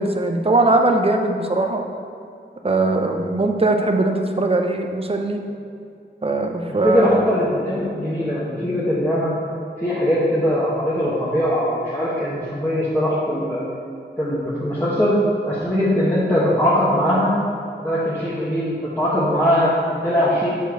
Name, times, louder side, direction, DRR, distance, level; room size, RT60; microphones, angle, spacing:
voice 1, 0.0-1.8 2.6-5.4 6.2-7.2, right 2 dB, 30° right, 4 dB, 0.6 m, -20 dB
voice 2, 6.7-9.3 9.8-13.6 14.2-15.2 15.5-17.4 17.8-20.5, equal, 10° left, -10 dB, 1.2 m, -21 dB
6.9 x 4.5 x 4.5 m, 2.4 s
wide cardioid pair, 90°, 20 cm